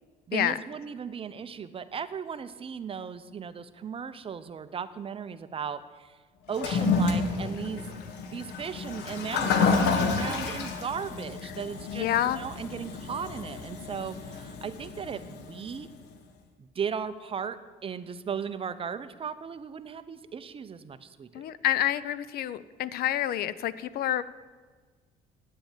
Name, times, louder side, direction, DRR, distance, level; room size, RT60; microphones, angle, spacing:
voice 1, 0.3-6.2 6.5-7.9 8.2-15.9 16.6-21.3, right 7 dB, 35° right, 12 dB, 0.7 m, -36 dB
Toilet flush, 6.5-15.8, left 4 dB, 85° left, 1.4 m, -30 dB
voice 2, 11.9-12.4 21.3-24.2, left 12 dB, 65° left, 17 dB, 0.5 m, -28 dB
9.2 x 7.8 x 8.9 m, 1.5 s
cardioid pair, 110°, 17 cm